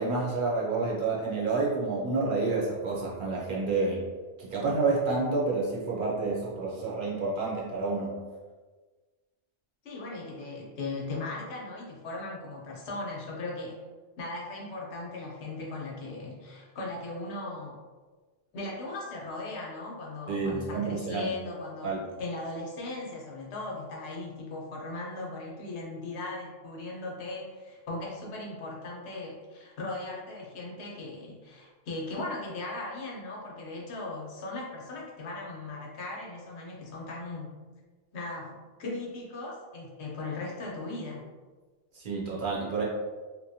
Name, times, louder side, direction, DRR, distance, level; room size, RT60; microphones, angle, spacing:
voice 1, 0.0-4.0 4.4-8.1 20.3-21.3 21.8-22.0 41.9-42.8, right 3 dB, 55° right, -4 dB, 0.7 m, -29 dB
voice 2, 9.8-13.8 14.2-17.8 18.5-21.9 22.2-37.5 38.1-41.2, left 2 dB, 80° left, -2 dB, 1.0 m, -38 dB
2.9 x 2.2 x 2.6 m, 1.4 s
omnidirectional pair, 1.1 m